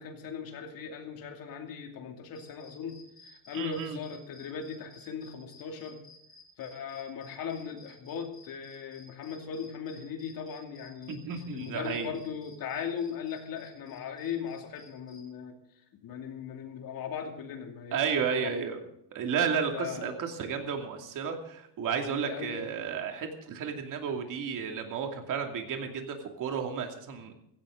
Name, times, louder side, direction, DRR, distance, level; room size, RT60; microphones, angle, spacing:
voice 1, 0.0-6.0 6.6-11.2 11.5-15.5 16.0-18.5 19.7-20.1 22.1-22.7, left 7 dB, 45° left, 3 dB, 2.6 m, -38 dB
sound 1, 2.3-15.2, left 4 dB, 10° left, 2.8 m, -55 dB
voice 2, 3.5-4.0 11.1-12.2 17.9-18.8 19.1-27.3, right 6 dB, 40° right, 3 dB, 2.6 m, -32 dB
17.0 x 15.0 x 3.9 m, 0.76 s
cardioid pair, 160°, 47 cm